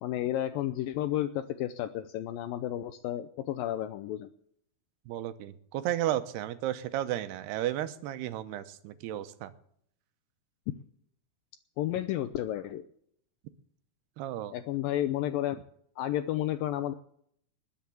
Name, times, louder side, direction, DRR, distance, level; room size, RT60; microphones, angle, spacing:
voice 1, 0.0-4.3 11.8-12.8 14.5-15.6 16.0-16.9, left 13 dB, 80° left, 10 dB, 2.0 m, -32 dB
voice 2, 5.1-9.5 14.2-14.5, right 13 dB, 85° right, 12 dB, 2.9 m, -33 dB
20.0 x 7.2 x 7.1 m, 0.66 s
omnidirectional pair, 4.7 m